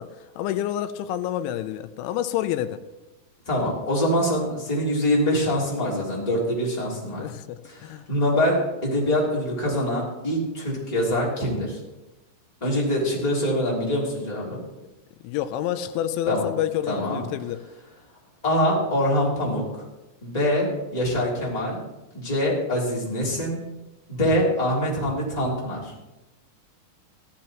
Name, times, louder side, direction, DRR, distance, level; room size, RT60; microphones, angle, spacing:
voice 1, 0.0-2.8 7.2-8.0 15.2-17.6, left 11 dB, 90° left, 11 dB, 3.0 m, -28 dB
voice 2, 3.5-7.2 7.7-7.8 8.1-11.8 12.6-14.6 16.3-16.5 16.9-17.2 18.4-19.6 20.2-21.8 22.1-23.6 24.1-25.9, equal, 10° left, -5 dB, 2.4 m, -24 dB
15.0 x 13.5 x 3.0 m, 1.0 s
omnidirectional pair, 5.3 m